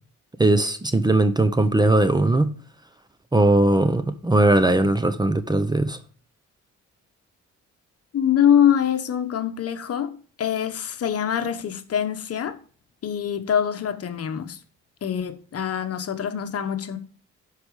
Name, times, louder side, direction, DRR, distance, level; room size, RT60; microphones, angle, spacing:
voice 1, 0.4-2.5 3.3-6.0, right 2 dB, 15° right, 0.7 m, -19 dB
voice 2, 8.1-12.6 13.0-14.6 15.0-17.0, left 9 dB, 50° left, 1.2 m, -24 dB
12.0 x 4.9 x 4.8 m
cardioid pair, 90°, 30 cm